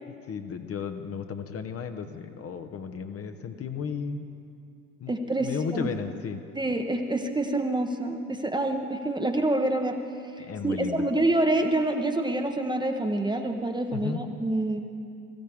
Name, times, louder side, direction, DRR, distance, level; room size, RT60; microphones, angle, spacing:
voice 1, 0.1-4.2 5.0-6.4 10.5-11.1 13.9-14.2, left 6 dB, 30° left, 7 dB, 1.0 m, -34 dB
voice 2, 5.1-5.9 6.6-10.0 10.4-14.8, right 2 dB, 10° right, 4 dB, 1.0 m, -27 dB
22.0 x 14.5 x 3.5 m, 2.5 s
figure-of-eight pair, 70°, 45 cm